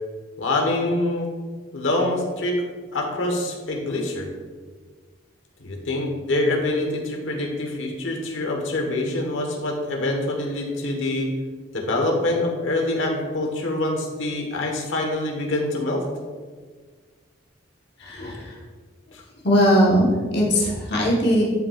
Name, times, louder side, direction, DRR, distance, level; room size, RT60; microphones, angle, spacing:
voice 1, 0.4-1.3 1.7-2.6 2.9-4.3 5.6-11.3 11.7-16.0 19.1-19.2, left 2 dB, 70° left, 2 dB, 1.2 m, -25 dB
voice 2, 18.0-18.6 19.4-21.4, equal, 55° left, -4 dB, 1.3 m, -19 dB
10.5 x 5.5 x 2.4 m, 1.5 s
head